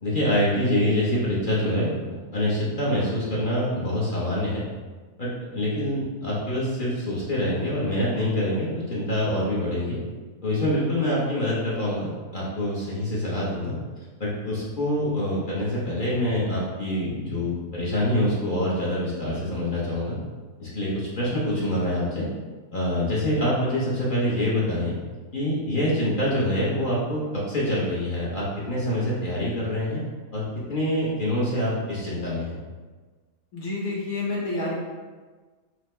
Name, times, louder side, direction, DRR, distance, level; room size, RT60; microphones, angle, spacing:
voice 1, 0.0-4.6 5.2-10.0 10.4-13.8 14.2-20.2 20.6-22.3 22.7-24.9 25.3-30.0 30.3-30.4 30.7-32.6, left 1 dB, 40° left, -7 dB, 0.8 m, -25 dB
voice 2, 33.5-34.7, left 2 dB, 85° left, -5 dB, 1.6 m, -28 dB
5.8 x 2.2 x 3.1 m, 1.4 s
omnidirectional pair, 1.6 m